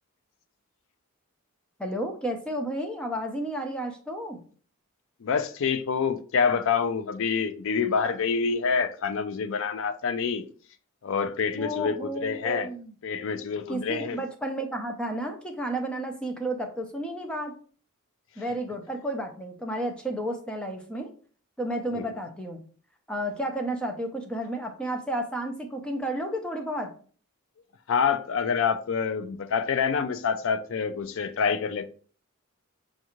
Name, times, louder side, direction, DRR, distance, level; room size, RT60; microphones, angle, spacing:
voice 1, 1.8-4.4 11.6-12.9 13.7-17.5 18.4-21.1 21.6-22.6 23.1-26.9, right 1 dB, 5° left, 0.5 m, -32 dB
voice 2, 5.2-10.4 11.0-12.7 13.0-14.2 21.9-22.1 27.9-31.9, left 6 dB, 60° left, 0.4 m, -27 dB
5.2 x 2.4 x 3.0 m
head